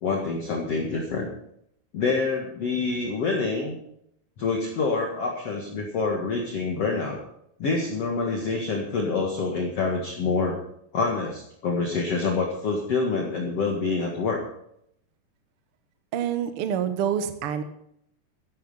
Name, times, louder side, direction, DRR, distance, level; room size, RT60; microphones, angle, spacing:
voice 1, 0.0-1.3 1.9-3.7 4.4-7.2 7.6-10.6 10.9-14.4, left 4 dB, 50° left, 0 dB, 2.3 m, -26 dB
voice 2, 16.1-17.6, right 9 dB, 90° right, 9 dB, 1.2 m, -27 dB
14.0 x 12.0 x 5.5 m, 0.73 s
omnidirectional pair, 4.5 m